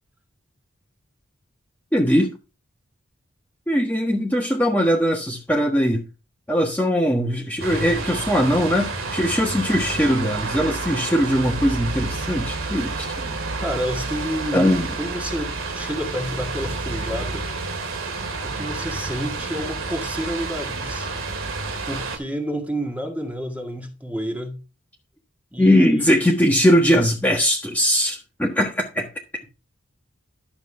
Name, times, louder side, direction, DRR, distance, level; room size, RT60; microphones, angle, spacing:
voice 1, 1.9-2.3 3.7-6.0 6.5-13.3 14.5-14.9 25.6-29.1, equal, 10° left, 1.4 m, -20 dB
sound 1, 7.6-22.2, right 3 dB, 75° right, 2.2 m, -29 dB
voice 2, 13.6-17.5 18.4-21.1 21.9-24.6 25.5-25.9, equal, 5° right, 1.8 m, -30 dB
12.0 x 7.1 x 3.4 m
head